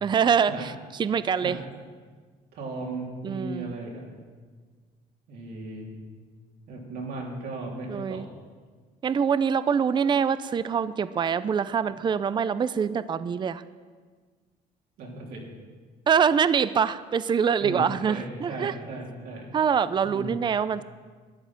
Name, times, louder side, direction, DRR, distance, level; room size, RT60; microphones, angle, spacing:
voice 1, 0.0-0.7 1.0-1.6 3.2-3.7 7.9-8.3 9.0-13.6 16.1-18.7 19.5-20.8, right 7 dB, 25° right, 15 dB, 0.4 m, -24 dB
voice 2, 2.5-4.1 5.3-6.0 6.7-8.3 15.0-15.5 17.6-19.5 20.0-20.4, right 2 dB, 75° right, -2 dB, 3.5 m, -36 dB
12.5 x 10.5 x 5.8 m, 1.5 s
cardioid pair, 110°, 17 cm